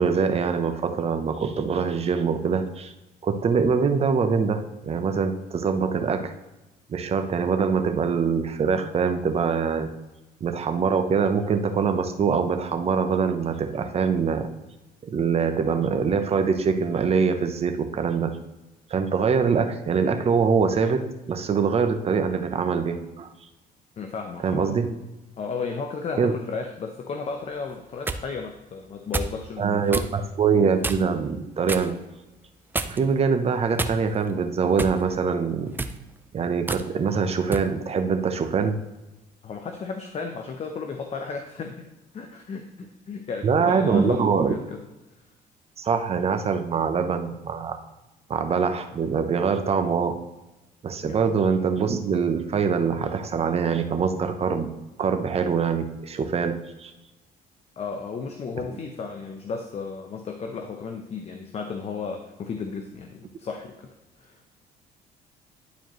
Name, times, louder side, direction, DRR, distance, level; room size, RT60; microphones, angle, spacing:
voice 1, 0.0-2.9 3.2-6.3 6.9-9.9 10.4-14.5 15.0-18.4 18.9-23.3 24.4-24.9 26.2-26.3 29.6-32.0 32.8-35.7 36.3-38.8 43.4-44.5 45.8-47.8 48.3-50.2 50.8-56.9, right 5 dB, 35° right, 7 dB, 0.8 m, -24 dB
voice 2, 24.0-24.8 25.4-30.1 39.4-44.8 51.0-51.2 57.8-64.4, left 5 dB, 40° left, 4 dB, 0.7 m, -34 dB
sound 1, 27.7-28.2 29.1-29.4 29.9-30.1 30.8-31.2 31.7-31.9 32.7-33.2 33.8-34.3 34.8-35.0 35.7-36.0 36.7-36.9 37.5-37.7, right 3 dB, 10° right, 0.4 m, -29 dB
11.5 x 4.5 x 3.1 m, 1.0 s
cardioid pair, 110°, 17 cm